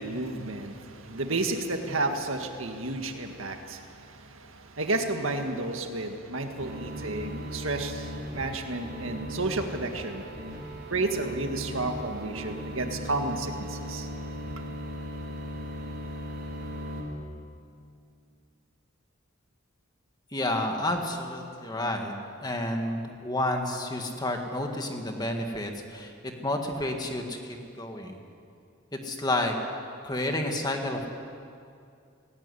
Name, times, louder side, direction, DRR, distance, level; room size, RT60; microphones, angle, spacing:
voice 1, 0.0-10.3 10.9-14.1, right 2 dB, 70° right, 5 dB, 1.9 m, -32 dB
sound 1, 6.6-17.0, equal, 50° right, 4.4 m, -38 dB
voice 2, 20.3-22.1 22.4-26.1 26.4-28.2 29.0-29.6 30.0-31.1, left 1 dB, 20° left, 3 dB, 1.9 m, -30 dB
18.5 x 18.0 x 9.9 m, 2.5 s
head